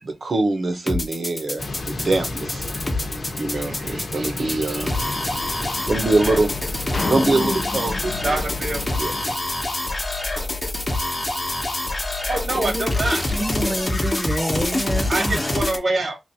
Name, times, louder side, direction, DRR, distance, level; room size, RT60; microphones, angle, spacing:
voice 1, 0.0-2.7 3.4-5.1 5.9-6.5 7.1-8.4 9.0-9.1, right 2 dB, 60° right, 0.9 m, -23 dB
sound 1, 0.9-15.8, left 2 dB, 30° left, 0.9 m, -26 dB
sound 2, 1.6-9.4, left 2 dB, 70° left, 0.8 m, -33 dB
sound 3, 6.9-9.4, left 4 dB, 50° left, 0.4 m, -30 dB
voice 2, 8.2-8.9 12.3-13.2 15.1-16.2, right 2 dB, 80° right, 1.5 m, -25 dB
voice 3, 12.5-12.9 13.3-15.6, right 1 dB, 15° right, 0.3 m, -28 dB
3.2 x 2.5 x 4.1 m
wide cardioid pair, 110°, 0 cm